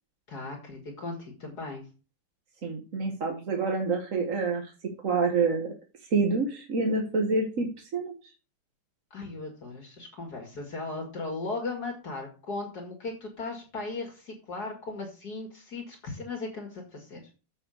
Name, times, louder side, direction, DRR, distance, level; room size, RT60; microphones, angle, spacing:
voice 1, 0.3-1.9 9.1-17.2, left 3 dB, 60° left, 1 dB, 2.8 m, -37 dB
voice 2, 2.6-4.7 5.0-5.7 6.1-8.1, right 4 dB, 50° right, 2 dB, 1.7 m, -27 dB
7.5 x 6.4 x 6.5 m, 0.34 s
omnidirectional pair, 1.9 m